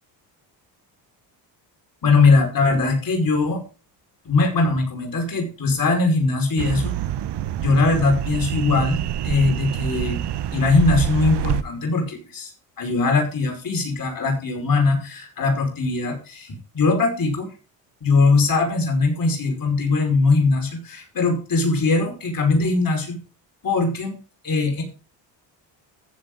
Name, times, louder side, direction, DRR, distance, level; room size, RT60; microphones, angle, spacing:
voice 1, 2.0-3.6 4.3-6.9 7.6-10.2 10.5-12.5 12.8-17.5 18.0-23.2 23.6-24.2 24.4-24.8, left 3 dB, 45° left, 2 dB, 5.4 m, -20 dB
sound 1, 6.6-11.6, right 11 dB, 55° right, 1.0 m, -26 dB
14.5 x 7.8 x 3.9 m, 0.34 s
supercardioid pair, 70°, 48 cm